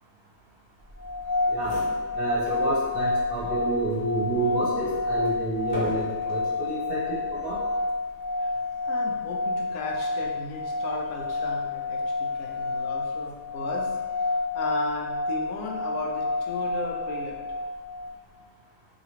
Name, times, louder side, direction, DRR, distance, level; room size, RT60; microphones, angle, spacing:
sound 1, 1.0-18.1, left 3 dB, 35° left, 0.8 m, -29 dB
sound 2, 1.2-1.3 1.5-2.7 3.1-3.2 3.9-6.5 7.2-7.6, left 1 dB, 60° left, 1.1 m, -42 dB
voice 1, 2.1-7.6, right 2 dB, 50° right, -7 dB, 0.9 m, -29 dB
voice 2, 8.8-13.9 14.2-17.5, left 3 dB, 85° left, 0 dB, 1.1 m, -36 dB
3.0 x 2.8 x 2.8 m, 1.3 s
omnidirectional pair, 1.5 m